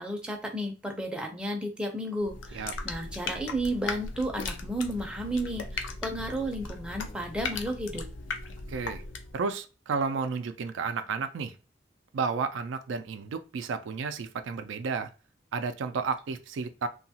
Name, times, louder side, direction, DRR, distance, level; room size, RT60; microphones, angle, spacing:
voice 1, 0.0-8.0, right 1 dB, 5° right, 0.4 m, -33 dB
sound 1, 2.2-9.4, left 4 dB, 90° left, 0.5 m, -38 dB
voice 2, 8.7-9.0 9.3-11.5 12.1-15.1 15.5-16.9, right 5 dB, 85° right, 0.4 m, -32 dB
2.8 x 2.3 x 2.7 m
head